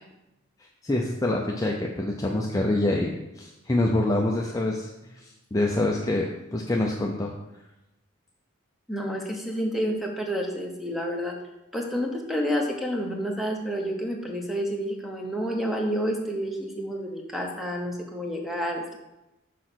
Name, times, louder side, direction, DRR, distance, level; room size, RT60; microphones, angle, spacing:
voice 1, 0.8-7.3, left 1 dB, 15° left, 0 dB, 0.5 m, -26 dB
voice 2, 8.9-11.4 11.7-19.0, equal, ahead, 1 dB, 1.0 m, -29 dB
6.2 x 5.0 x 6.1 m, 0.97 s
head